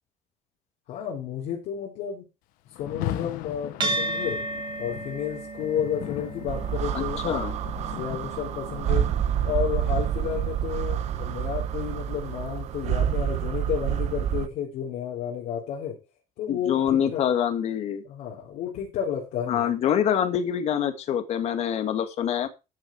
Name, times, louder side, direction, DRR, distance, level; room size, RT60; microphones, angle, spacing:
voice 1, 0.9-2.2 2.8-4.4 4.8-7.5 7.9-9.1 9.4-16.0 16.4-17.2 18.0-19.7, left 9 dB, 70° left, -4 dB, 3.9 m, -31 dB
Rain, 2.7-11.8, left 14 dB, 85° left, 1.2 m, -39 dB
sound 1, 3.8-12.5, right 2 dB, 30° right, 2.7 m, -36 dB
sound 2, 6.5-14.5, right 10 dB, 55° right, 1.0 m, -28 dB
voice 2, 6.9-7.5 16.5-18.0 19.5-22.5, left 9 dB, 50° left, 9 dB, 1.9 m, -25 dB
13.5 x 6.8 x 4.7 m, 0.28 s
cardioid pair, 155°, 14 cm